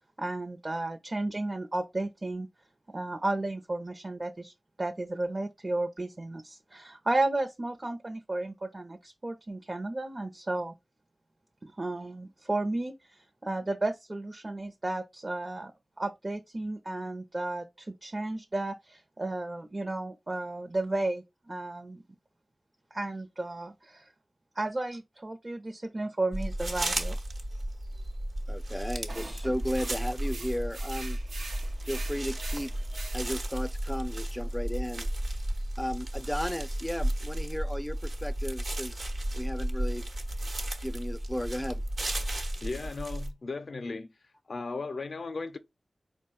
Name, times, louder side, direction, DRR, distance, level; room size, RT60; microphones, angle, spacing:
voice 1, 0.2-2.5 2.9-4.5 4.8-10.7 11.6-12.9 13.4-15.7 16.0-22.0 22.9-24.1 24.6-27.2, right 2 dB, 45° right, 0.7 m, -33 dB
sound 1, 26.3-43.3, right 1 dB, 65° right, 1.0 m, -33 dB
voice 2, 28.5-31.2 31.8-32.7 33.1-35.1 35.8-39.0 39.3-40.1 40.8-41.8, equal, 10° left, 0.4 m, -34 dB
sound 2, 29.1-33.6, right 3 dB, 85° right, 0.7 m, -44 dB
voice 3, 42.2-44.1 44.5-45.6, left 3 dB, 75° left, 0.5 m, -37 dB
4.5 x 2.2 x 4.3 m
cardioid pair, 45°, 0 cm